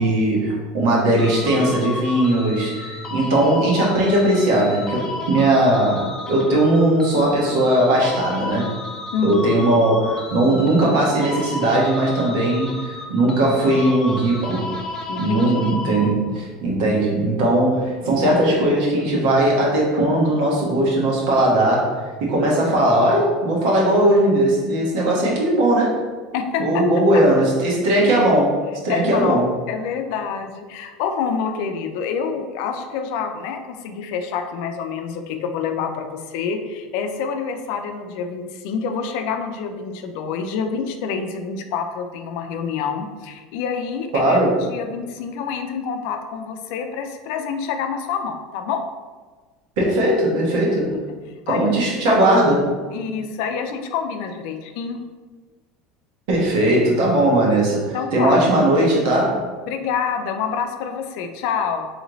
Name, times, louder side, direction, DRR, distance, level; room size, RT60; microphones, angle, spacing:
voice 1, 0.0-8.7 9.2-14.8 15.2-26.0 26.6-28.6 28.8-29.4 44.1-44.6 49.8-50.9 51.5-52.7 56.3-59.4, right 1 dB, 70° right, -4 dB, 1.3 m, -18 dB
sound 1, 1.2-16.4, left 2 dB, 20° left, 0.6 m, -33 dB
voice 2, 9.1-9.4 15.1-15.6 26.3-26.8 28.9-48.8 50.9-51.0 51.5-52.2 52.9-55.0 57.9-58.4 59.7-61.9, left 6 dB, 70° left, 6 dB, 0.5 m, -27 dB
3.2 x 3.0 x 3.9 m, 1.4 s
supercardioid pair, 115°, 3 cm